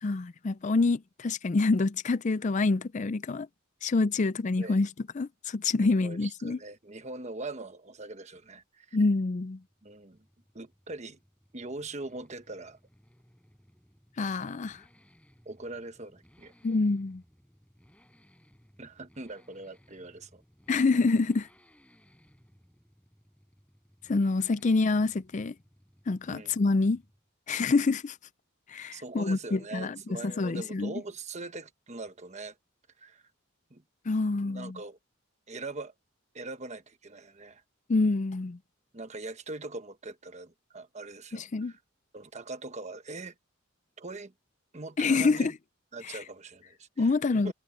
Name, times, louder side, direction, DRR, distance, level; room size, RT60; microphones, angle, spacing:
voice 1, 0.0-3.5 3.8-4.9 5.2-6.6 8.9-9.6 14.2-14.8 16.6-17.2 20.7-21.5 24.1-25.5 26.1-27.0 27.5-28.2 28.7-30.0 30.2-30.9 34.1-34.8 37.9-38.6 41.3-41.7 45.0-45.5 46.1-46.2 47.0-47.5, left 3 dB, 35° left, 0.4 m, -26 dB
voice 2, 5.8-9.0 9.8-10.2 10.5-11.2 11.5-12.8 15.4-16.5 18.8-20.4 26.3-26.5 28.9-32.6 33.0-33.2 33.7-33.8 34.4-35.0 35.5-35.9 36.3-37.6 38.9-41.8 42.1-43.3 44.0-44.3 44.7-45.5 45.9-47.5, right 2 dB, 35° right, 1.2 m, -42 dB
Accelerating revving vroom, 9.5-27.3 27.6-27.7, equal, 5° left, 6.6 m, -62 dB
head